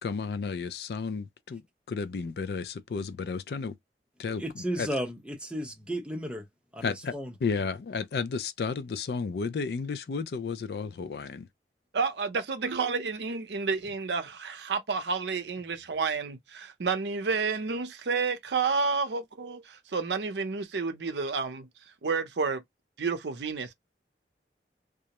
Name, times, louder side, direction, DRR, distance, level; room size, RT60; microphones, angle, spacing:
voice 1, 0.0-1.6 1.9-3.7 4.2-4.4 4.8-4.9 6.8-7.1 7.4-11.5, left 5 dB, 65° left, 0.4 m, -32 dB
voice 2, 4.3-6.5 6.7-7.3, equal, 5° right, 0.6 m, -34 dB
voice 3, 11.9-21.7 22.0-22.6 23.0-23.7, right 4 dB, 80° right, 0.6 m, -30 dB
2.3 x 2.0 x 2.9 m
head